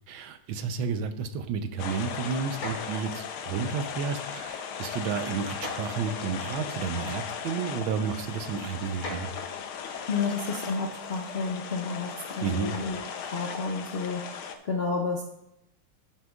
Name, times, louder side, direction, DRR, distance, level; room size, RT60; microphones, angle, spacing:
voice 1, 0.1-9.3 12.4-12.8, right 6 dB, 75° right, 9 dB, 1.4 m, -31 dB
sound 1, 1.8-14.5, left 7 dB, 90° left, 1.7 m, -37 dB
sound 2, 2.6-3.3 4.2-4.5 5.6-6.3 7.4-7.5 8.8-10.3 12.6-13.1, left 1 dB, 45° left, 3.1 m, -41 dB
voice 2, 9.8-14.2 14.6-15.2, left 4 dB, 65° left, 1 dB, 0.6 m, -31 dB
14.0 x 7.3 x 2.4 m, 0.84 s
omnidirectional pair, 2.3 m